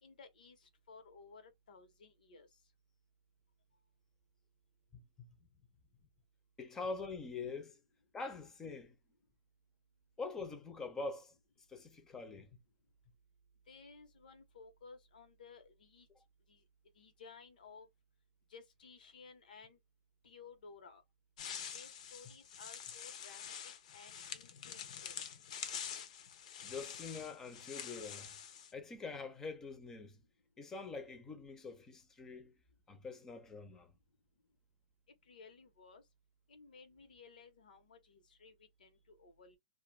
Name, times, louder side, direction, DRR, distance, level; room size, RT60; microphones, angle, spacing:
voice 1, 0.0-2.5 13.7-16.1 16.5-16.6 16.9-17.9 18.5-19.8 20.2-21.0 21.7-25.3 35.3-36.0 36.5-39.6, left 4 dB, 85° left, 1.0 m, -57 dB
voice 2, 4.9-5.3 6.6-7.8 8.1-9.0 10.2-11.3 11.7-12.6 26.6-28.4 28.7-30.2 30.6-32.5 32.9-33.9, left 4 dB, 10° left, 0.5 m, -45 dB
sound 1, 21.4-28.7, left 8 dB, 55° left, 0.6 m, -46 dB
2.4 x 2.2 x 3.2 m
hypercardioid pair, 160°, 4 cm